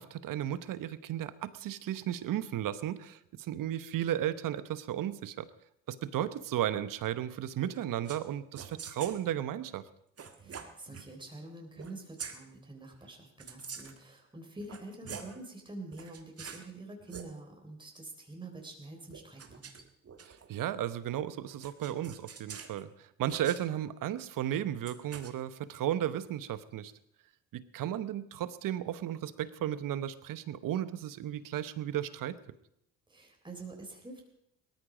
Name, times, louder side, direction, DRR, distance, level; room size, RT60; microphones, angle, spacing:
voice 1, 0.0-5.5 5.9-9.8 20.3-26.9 27.5-32.4, right 11 dB, 60° right, 15 dB, 1.0 m, -34 dB
sound 1, 8.0-8.3 8.5-9.2 10.2-11.1 11.8-11.9 12.2-12.4 13.4-14.0 14.6-15.4 15.9-16.7 17.0-17.3 19.1-20.6 21.6-22.8 23.3-23.6 24.8-25.3, right 6 dB, 40° right, 1.8 m, -45 dB
voice 2, 10.4-19.7 33.1-34.2, right 2 dB, 15° right, 1 dB, 3.8 m, -46 dB
17.5 x 13.5 x 5.1 m, 0.76 s
supercardioid pair, 70°, 37 cm